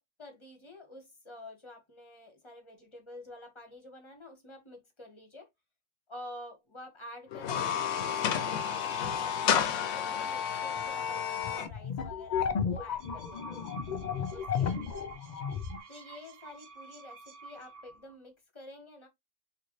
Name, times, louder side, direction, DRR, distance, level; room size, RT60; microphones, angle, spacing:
voice 1, 0.2-5.5 6.1-9.3 9.6-13.6 14.3-15.1 15.9-19.1, left 1 dB, 25° left, 0.9 m, -49 dB
sound 1, 7.3-11.7, left 8 dB, 65° left, 0.8 m, -31 dB
sound 2, 10.7-10.8 11.1-15.8, left 7 dB, 80° left, 0.4 m, -33 dB
sound 3, 12.8-18.1, right 4 dB, 50° right, 0.8 m, -50 dB
3.9 x 2.5 x 3.0 m
omnidirectional pair, 1.4 m